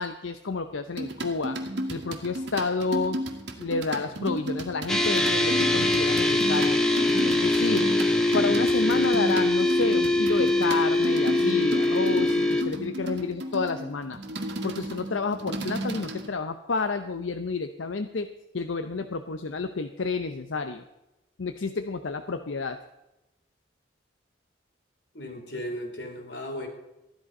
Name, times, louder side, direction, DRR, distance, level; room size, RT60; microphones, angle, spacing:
voice 1, 0.0-1.6 1.9-3.2 3.6-8.0 8.3-14.2 14.6-20.8 21.4-22.8, left 4 dB, 90° left, 8 dB, 0.7 m, -30 dB
sound 1, 1.0-16.3, right 1 dB, 65° right, 1.9 m, -34 dB
sound 2, 4.9-12.6, left 1 dB, 5° left, 1.1 m, -23 dB
voice 2, 25.1-26.7, equal, 65° left, 3 dB, 3.1 m, -36 dB
14.5 x 11.5 x 5.4 m, 0.96 s
head